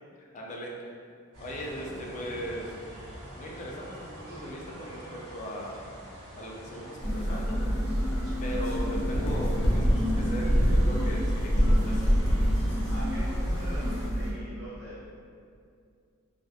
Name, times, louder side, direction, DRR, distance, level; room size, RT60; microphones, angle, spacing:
voice 1, 0.2-0.7 1.4-2.7 3.3-5.9 6.4-7.6 8.4-12.0, equal, 35° left, -2 dB, 0.3 m, -38 dB
sound 1, 1.3-14.1, equal, 85° right, 1.1 m, -45 dB
sound 2, 7.0-14.3, equal, 75° left, 0.7 m, -26 dB
voice 2, 12.9-15.0, equal, 60° right, -10 dB, 0.7 m, -43 dB
2.3 x 2.0 x 2.6 m, 2.4 s
head